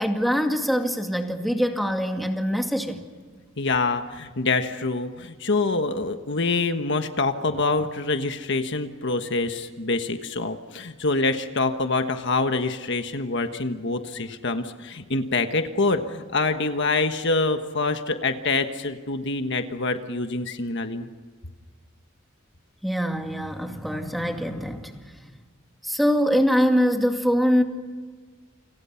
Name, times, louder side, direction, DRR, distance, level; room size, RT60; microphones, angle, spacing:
voice 1, 0.0-3.1 22.8-25.4 25.8-27.6, equal, ahead, 3 dB, 2.3 m, -23 dB
voice 2, 3.6-21.1, left 3 dB, 60° left, 7 dB, 1.4 m, -25 dB
29.5 x 27.0 x 5.9 m, 1.5 s
head